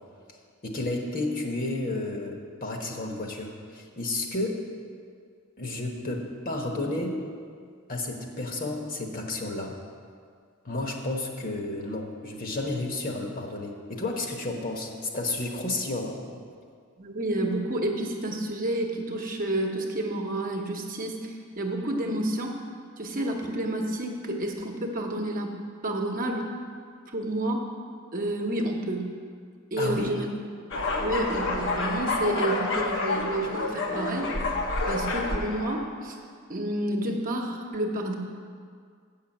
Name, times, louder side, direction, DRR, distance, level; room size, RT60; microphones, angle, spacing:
voice 1, 0.6-4.7 5.6-7.2 7.9-9.8 10.6-16.2 29.8-30.1, left 2 dB, 40° left, 2 dB, 1.2 m, -31 dB
voice 2, 17.0-22.6 23.0-25.6 25.8-26.5 27.1-27.7 28.1-29.1 29.7-30.3 30.9-34.3 34.9-36.2 36.5-38.2, right 1 dB, 40° right, 1 dB, 1.0 m, -30 dB
sound 1, 30.7-35.8, left 2 dB, 60° left, 0.9 m, -28 dB
8.0 x 5.8 x 7.9 m, 2.1 s
head